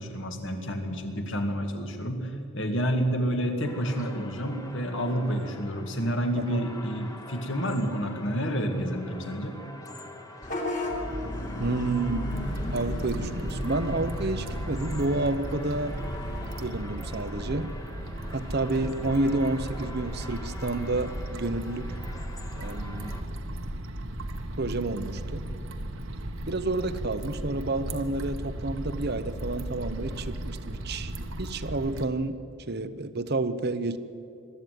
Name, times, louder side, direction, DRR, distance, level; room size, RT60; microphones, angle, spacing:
voice 1, 0.0-9.6, equal, 55° left, 4 dB, 2.3 m, -29 dB
sound 1, 3.6-23.2, left 2 dB, 15° left, 1.3 m, -45 dB
voice 2, 6.3-6.7 11.6-16.0 16.6-17.7 18.3-21.9 22.6-23.1 24.6-25.4 26.5-31.1 31.4-32.4 32.7-34.0, right 2 dB, 45° right, 12 dB, 0.9 m, -30 dB
Vehicle horn car horn honking / Bus, 10.4-16.5, equal, 35° left, 2.9 m, -34 dB
sound 2, 12.3-32.1, right 1 dB, 65° right, 1.4 m, -36 dB
22.5 x 13.5 x 9.4 m, 2.7 s
head